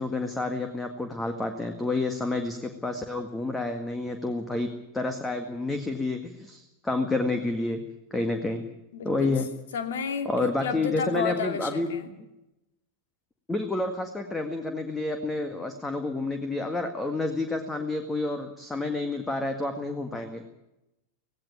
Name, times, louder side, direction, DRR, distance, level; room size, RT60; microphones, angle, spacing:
voice 1, 0.0-4.7 4.9-7.8 8.1-8.6 9.1-9.5 10.3-11.9 13.5-20.4, left 2 dB, 10° left, 7 dB, 1.8 m, -29 dB
voice 2, 8.9-9.4 9.7-12.1, left 6 dB, 60° left, 7 dB, 2.6 m, -32 dB
17.5 x 17.5 x 9.0 m, 0.93 s
figure-of-eight pair, 90°, 0 cm